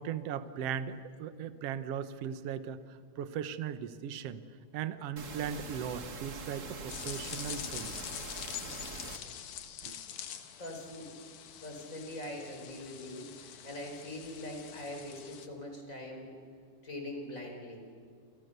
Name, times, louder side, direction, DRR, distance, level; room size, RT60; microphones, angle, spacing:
voice 1, 0.0-4.4 4.7-8.0 9.8-10.0, right 8 dB, 65° right, 12 dB, 1.9 m, -38 dB
sound 1, 5.2-9.2, right 3 dB, 35° right, 1.4 m, -43 dB
sound 2, 6.9-15.5, left 10 dB, 75° left, 2.8 m, -45 dB
voice 2, 10.6-11.1 11.6-16.3 16.8-17.8, left 1 dB, 25° left, 2 dB, 5.2 m, -42 dB
28.5 x 28.5 x 6.8 m, 2.1 s
omnidirectional pair, 3.4 m